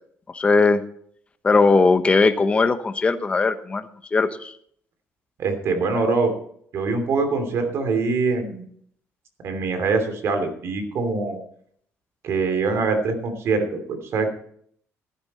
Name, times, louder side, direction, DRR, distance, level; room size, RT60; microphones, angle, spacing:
voice 1, 0.3-0.8 1.4-4.5, left 3 dB, 25° left, 9 dB, 1.0 m, -19 dB
voice 2, 5.4-6.3 6.7-8.6 9.4-11.4 12.2-14.3, right 4 dB, 60° right, 6 dB, 3.1 m, -23 dB
15.0 x 11.5 x 4.3 m, 0.62 s
cardioid pair, 135°, 5 cm